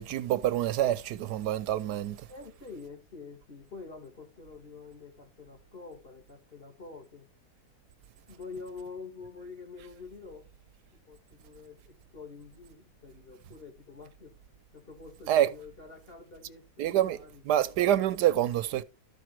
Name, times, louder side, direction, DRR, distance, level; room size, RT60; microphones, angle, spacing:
voice 1, 0.0-2.3 15.3-15.5 16.8-17.2 17.5-18.8, right 12 dB, 80° right, 1.2 m, -26 dB
voice 2, 2.3-7.3 8.3-10.5 10.9-14.3 14.7-17.6, left 4 dB, 35° left, 2.7 m, -47 dB
13.5 x 5.0 x 4.6 m
omnidirectional pair, 1.8 m